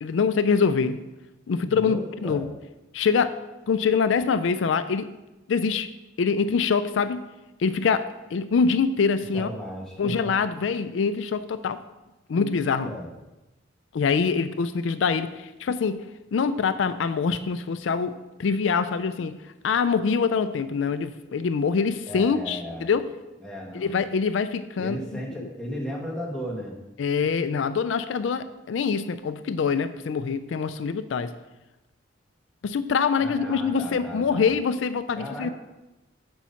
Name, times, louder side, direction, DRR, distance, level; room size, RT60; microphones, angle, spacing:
voice 1, 0.0-1.0 1.5-2.5 2.9-3.4 3.7-5.1 5.5-5.9 6.2-7.3 7.6-9.5 10.0-11.8 12.3-12.9 13.9-16.0 16.3-19.4 19.6-23.1 23.7-25.0 25.4-25.5 27.0-31.3 32.6-35.5, left 5 dB, 85° left, 12 dB, 0.4 m, -24 dB
voice 2, 1.6-2.5 9.3-10.3 12.3-13.1 22.1-22.9 23.4-24.0 24.8-26.8 33.2-34.5 35.2-35.5, equal, 5° left, -3 dB, 1.5 m, -35 dB
7.4 x 5.4 x 5.7 m, 1.0 s
head